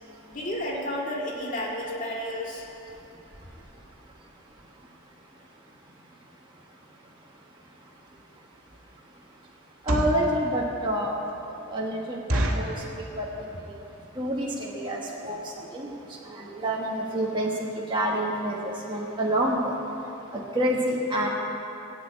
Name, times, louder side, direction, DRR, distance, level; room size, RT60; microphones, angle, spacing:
voice 1, 0.3-2.7, left 1 dB, 40° left, -3 dB, 1.9 m, -31 dB
sound 1, 8.1-8.2 8.7-8.9 9.6-10.3 10.8-10.9 11.3-11.4 11.7-11.8 12.3-12.8 13.4-13.7 13.9-14.0 14.3-14.5 15.1-15.2 15.4-15.6 15.9-16.0 16.2-16.3, right 1 dB, 85° right, 1.8 m, -27 dB
voice 2, 9.9-11.1 11.7-13.3 13.6-13.7 14.2-15.4 15.7-15.9 16.3-17.5 17.9-19.7 20.3-21.3, right 1 dB, 25° right, -3 dB, 1.4 m, -28 dB
16.5 x 8.6 x 8.8 m, 3.0 s
head